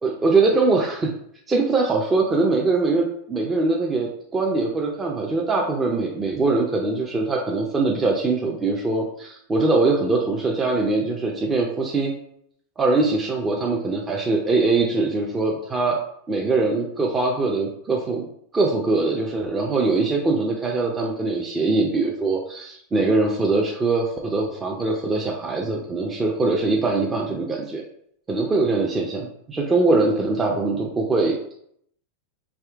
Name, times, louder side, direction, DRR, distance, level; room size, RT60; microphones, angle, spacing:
voice 1, 0.0-1.1 1.5-12.1 12.8-16.0 16.3-18.3 18.5-27.8 28.3-31.6, right 3 dB, 20° right, -1 dB, 0.5 m, -22 dB
3.5 x 2.7 x 3.5 m, 0.70 s
hypercardioid pair, 110°, 0 cm